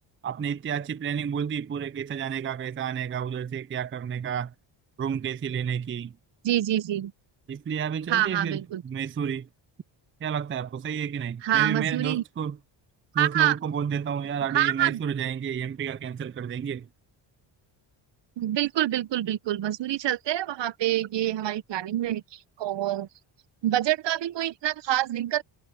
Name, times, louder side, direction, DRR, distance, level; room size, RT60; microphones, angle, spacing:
voice 1, 0.2-4.5 5.0-6.2 7.5-9.5 10.2-12.6 13.1-16.9, right 7 dB, 25° right, 0.5 m, -30 dB
voice 2, 6.4-7.1 8.1-8.8 11.4-12.2 13.2-13.6 14.5-15.0 18.4-22.2 22.6-23.1 23.6-25.4, right 13 dB, 60° right, 1.0 m, -26 dB
cardioid pair, 85°, 49 cm